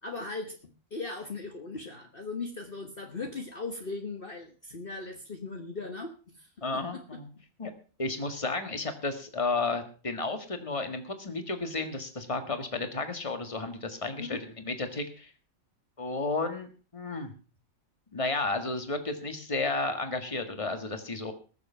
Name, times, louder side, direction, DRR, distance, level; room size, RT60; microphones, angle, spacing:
voice 1, 0.0-7.0 14.2-14.4, left 3 dB, 45° left, 4 dB, 1.6 m, -38 dB
voice 2, 6.6-7.3 7.6-7.7 8.0-14.4 14.6-15.3 16.0-17.3 18.1-21.3, left 3 dB, 25° left, 8 dB, 1.8 m, -32 dB
20.0 x 7.3 x 5.7 m, 0.37 s
omnidirectional pair, 1.4 m